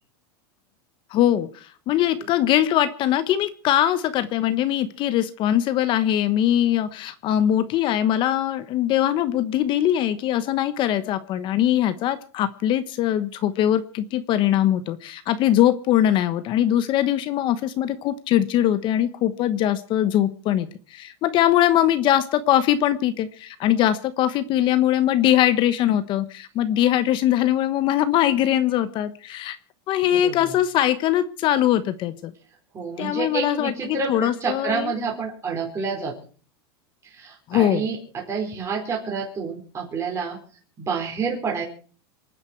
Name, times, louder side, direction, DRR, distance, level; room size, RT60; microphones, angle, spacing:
voice 1, 1.1-1.5 1.9-29.6 29.9-32.3 33.0-34.9 37.5-37.8, left 12 dB, 35° left, 12 dB, 1.2 m, -21 dB
voice 2, 30.0-30.6 32.7-36.1 37.0-40.4 40.8-41.6, right 5 dB, 20° right, -1 dB, 4.6 m, -29 dB
27.5 x 9.7 x 4.6 m, 0.41 s
supercardioid pair, 150°, 14 cm